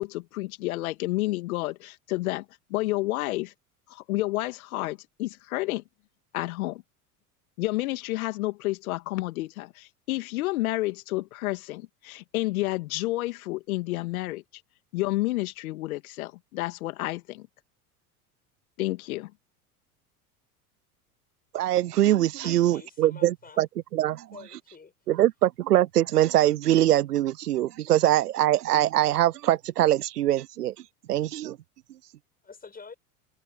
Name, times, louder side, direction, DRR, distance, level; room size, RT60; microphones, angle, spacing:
voice 1, 0.0-2.4 2.7-3.5 3.9-5.8 6.3-6.8 7.6-14.4 14.9-17.5 18.8-19.3, left 19 dB, 65° left, 2.4 m, -30 dB
voice 2, 21.5-23.7 23.9-24.2 25.1-30.7 31.1-31.6, right 13 dB, 85° right, 0.6 m, -23 dB
voice 3, 22.4-23.6 24.3-24.9 32.4-33.0, left 5 dB, 20° left, 6.4 m, -47 dB
hypercardioid pair, 80°, 45 cm